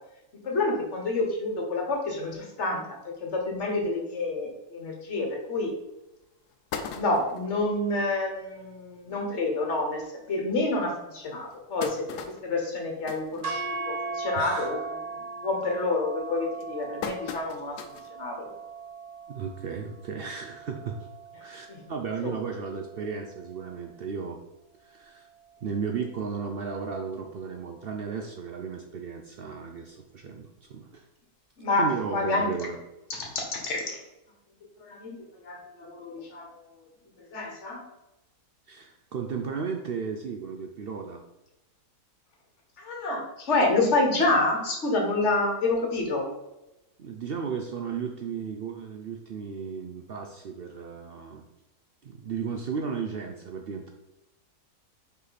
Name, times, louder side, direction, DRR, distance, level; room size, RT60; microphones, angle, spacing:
voice 1, 0.4-5.7 6.9-10.0 10.3-14.8 15.4-17.8 18.1-18.5 21.7-21.9 22.2-22.3 31.6-32.5 33.1-34.0 34.8-36.7 37.2-37.8 42.8-46.2, left 2 dB, 50° left, 1 dB, 1.6 m, -28 dB
sound 1, 5.6-5.7 6.2-6.3 6.5-7.5 8.1-8.2 8.5-8.6 8.9-9.1 9.8-9.9 10.4-10.5 11.2-14.1 14.5-14.8 15.1-15.5 16.2-18.2 18.6-18.7 19.9-20.0, left 6 dB, 85° left, 1.2 m, -39 dB
sound 2, 13.4-21.7, right 4 dB, 50° right, 1.4 m, -38 dB
voice 2, 14.4-14.8 19.3-21.1 21.4-24.4 24.8-25.3 25.6-31.1 31.8-32.8 38.7-41.2 47.0-51.4 52.0-53.9, right 6 dB, 75° right, 4 dB, 0.5 m, -34 dB
5.1 x 5.1 x 4.1 m, 0.94 s
omnidirectional pair, 1.7 m